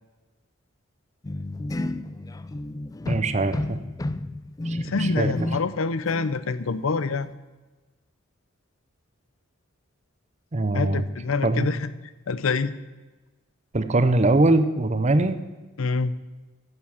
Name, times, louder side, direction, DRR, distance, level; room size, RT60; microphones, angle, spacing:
sound 1, 1.2-5.8 6.1-6.4, left 1 dB, 15° left, 0.3 m, -31 dB
voice 1, 3.1-3.8 4.6-5.3 10.5-11.0 11.4-11.7 13.7-15.4, right 2 dB, 35° right, 11 dB, 0.7 m, -22 dB
voice 2, 4.8-7.3 10.7-11.9 12.3-12.8 15.8-16.1, left 4 dB, 85° left, 14 dB, 0.6 m, -26 dB
11.0 x 7.0 x 7.1 m, 1.2 s
head